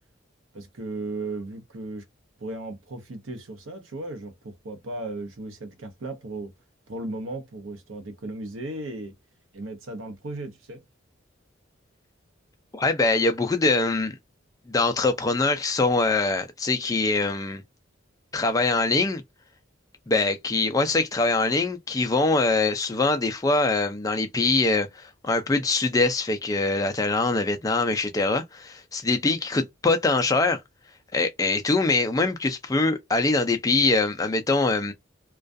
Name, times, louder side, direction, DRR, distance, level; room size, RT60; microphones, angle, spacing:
voice 1, 0.5-2.0 2.4-6.5 6.9-9.1 9.5-10.8, right 2 dB, 80° right, 0.8 m, -36 dB
voice 2, 12.7-14.1 14.7-17.6 18.3-19.2 20.1-30.6 31.1-34.9, left 3 dB, 15° left, 0.3 m, -23 dB
2.3 x 2.2 x 2.5 m
head